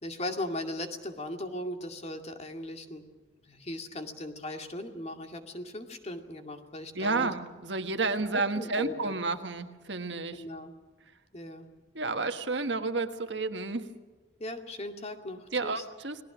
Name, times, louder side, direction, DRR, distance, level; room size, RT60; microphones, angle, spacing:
voice 1, 0.0-3.1 3.4-7.3 8.3-9.1 10.3-10.7 11.3-11.7 14.4-15.8, left 1 dB, 35° left, 5 dB, 2.4 m, -38 dB
voice 2, 6.9-10.4 11.9-13.8 15.5-16.2, right 3 dB, 70° right, 8 dB, 1.6 m, -31 dB
30.0 x 19.5 x 6.2 m, 1.3 s
head